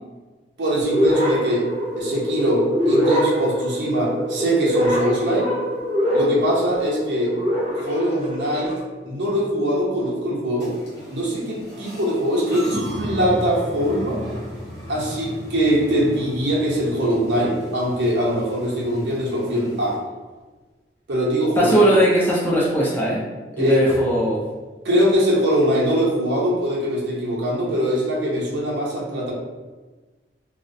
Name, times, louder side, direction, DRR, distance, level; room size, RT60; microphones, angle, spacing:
voice 1, 0.6-1.7 2.0-5.5 6.1-7.3 7.7-8.7 9.0-10.7 11.1-14.2 14.9-20.0 21.1-21.7 23.5-23.8 24.8-29.3, equal, 85° right, -4 dB, 0.6 m, -22 dB
sound 1, 0.8-8.8, equal, 40° right, 0.6 m, -24 dB
sound 2, 10.6-20.0, equal, 80° left, 0.9 m, -35 dB
voice 2, 21.6-23.2 23.6-24.4, right 1 dB, 10° left, -6 dB, 0.4 m, -19 dB
2.3 x 2.1 x 2.5 m, 1.3 s
head